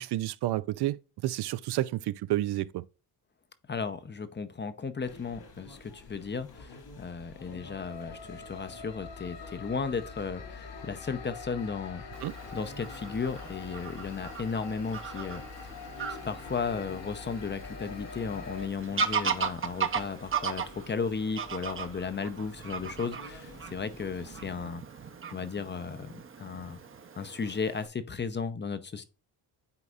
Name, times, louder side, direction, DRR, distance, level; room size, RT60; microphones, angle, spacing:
voice 1, 0.0-2.8 12.2-12.3, right 15 dB, 70° right, 0.5 m, -30 dB
voice 2, 3.7-12.0 12.5-15.4 16.1-24.8 25.3-26.8 27.2-29.0, left 5 dB, 25° left, 0.7 m, -35 dB
sound 1, 5.0-24.7, left 2 dB, 60° left, 2.2 m, -51 dB
sound 2, 7.1-18.7, left 5 dB, 90° left, 1.4 m, -45 dB
Fowl / Bird vocalization bird call bird song, 12.1-27.9, right 6 dB, 30° right, 0.8 m, -37 dB
9.7 x 4.1 x 2.4 m
cardioid pair, 85°, 41 cm